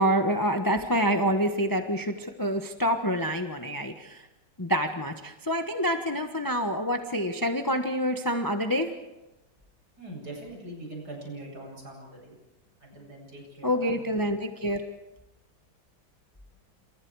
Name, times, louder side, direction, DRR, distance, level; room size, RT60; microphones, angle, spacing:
voice 1, 0.0-4.2 4.6-8.9 13.6-14.8, equal, 15° left, 5 dB, 1.0 m, -27 dB
voice 2, 10.0-12.4 12.8-14.1, right 1 dB, 50° right, 0 dB, 8.7 m, -42 dB
28.5 x 28.0 x 4.8 m, 1.0 s
omnidirectional pair, 2.2 m